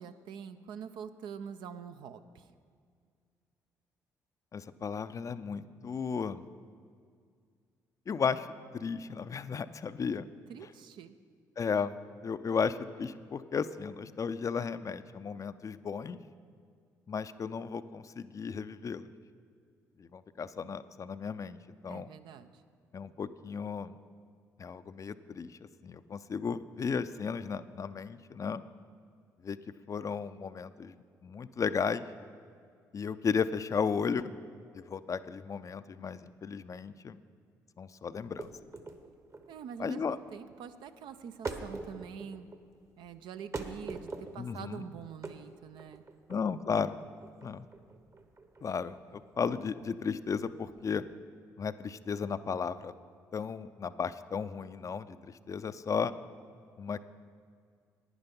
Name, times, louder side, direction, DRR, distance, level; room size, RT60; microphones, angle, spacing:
voice 1, 0.0-2.5 10.5-11.2 21.9-22.6 39.5-42.5 43.0-46.0, right 7 dB, 70° right, 10 dB, 0.5 m, -45 dB
voice 2, 4.5-6.4 8.1-8.5 8.7-10.3 11.6-11.9 12.2-16.2 17.1-19.1 20.0-21.6 21.8-22.1 22.9-24.0 24.6-28.6 29.4-29.6 29.9-30.9 31.2-32.1 32.9-34.3 34.7-37.2 37.8-38.5 39.8-40.2 44.4-44.8 46.3-47.0 47.4-47.6 48.6-51.0 51.6-52.9 53.3-56.1 56.8-57.0, left 6 dB, 40° left, 13 dB, 0.5 m, -34 dB
sound 1, 38.2-51.2, right 3 dB, 35° right, 1.0 m, -44 dB
9.8 x 9.6 x 5.3 m, 2.1 s
hypercardioid pair, 50°, 8 cm